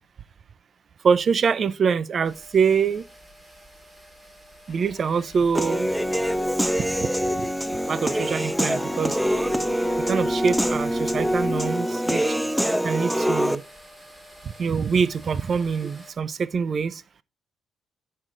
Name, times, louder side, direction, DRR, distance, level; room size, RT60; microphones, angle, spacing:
voice 1, 1.0-3.0 4.7-5.9 7.0-7.1 7.9-9.2 10.1-12.3 12.8-13.6 14.6-17.0, right 6 dB, 50° right, 0.5 m, -24 dB
sound 1, 2.2-16.1, equal, 20° right, 2.5 m, -49 dB
sound 2, 4.7-11.7, left 6 dB, 45° left, 1.0 m, -42 dB
Human voice / Piano, 5.5-13.6, equal, 5° right, 0.5 m, -24 dB
8.8 x 6.4 x 3.8 m
cardioid pair, 90°, 0 cm